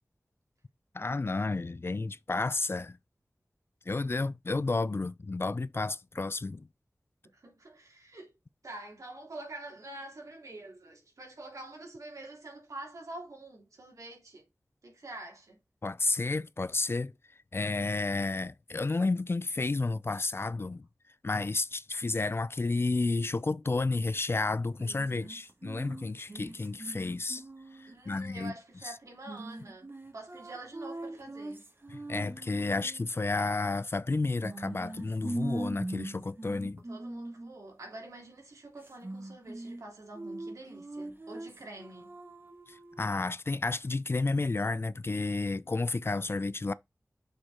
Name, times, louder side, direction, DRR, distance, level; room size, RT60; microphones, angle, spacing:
voice 1, 0.9-3.0 3.9-6.7 15.8-17.1 17.5-20.9 21.2-27.4 27.7-28.5 28.8-28.9 31.9-36.8 42.7-46.7, left 3 dB, 45° left, 0.5 m, -31 dB
voice 2, 7.3-8.3 8.6-14.4 14.8-15.6 27.9-29.9 30.1-31.7 36.9-42.2, right 2 dB, 80° right, 3.4 m, -46 dB
sound 1, 24.8-28.1 29.3-33.0 34.4-37.5 38.8-39.8 40.1-43.1, right 1 dB, 45° right, 1.7 m, -41 dB
6.6 x 4.7 x 3.7 m
cardioid pair, 45°, 5 cm